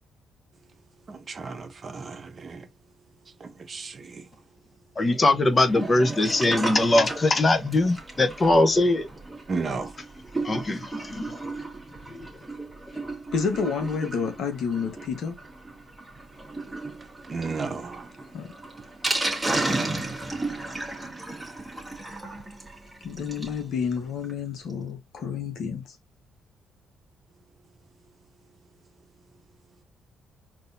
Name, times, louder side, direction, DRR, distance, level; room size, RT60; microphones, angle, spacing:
voice 1, 1.1-2.6 3.4-4.2 9.5-9.9 17.3-18.0, right 4 dB, 40° right, 0.9 m, -33 dB
voice 2, 5.0-9.1 10.4-11.4 12.1-12.3, left 2 dB, 30° left, 0.8 m, -22 dB
Sink (filling or washing), 5.6-23.6 24.0-24.1 24.2-24.3 24.7-24.8, right 2 dB, 10° right, 1.4 m, -34 dB
voice 3, 13.3-15.4 18.3-18.5 23.0-25.8, left 6 dB, 70° left, 1.1 m, -29 dB
3.9 x 2.8 x 2.6 m
cardioid pair, 90°, 0 cm